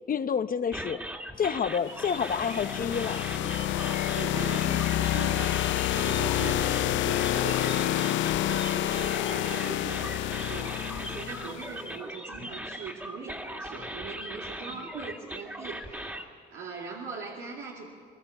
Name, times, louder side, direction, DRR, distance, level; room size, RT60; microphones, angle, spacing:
voice 1, 0.1-1.0 1.4-3.3, left 7 dB, 45° left, 12 dB, 0.8 m, -28 dB
sound 1, 0.7-16.2, right 1 dB, 10° right, 2.2 m, -39 dB
sound 2, 1.9-11.7, left 14 dB, 75° left, 0.5 m, -28 dB
voice 2, 4.1-17.9, right 5 dB, 85° right, -3 dB, 2.6 m, -41 dB
22.5 x 22.0 x 7.0 m, 2.1 s
cardioid pair, 90°, 20 cm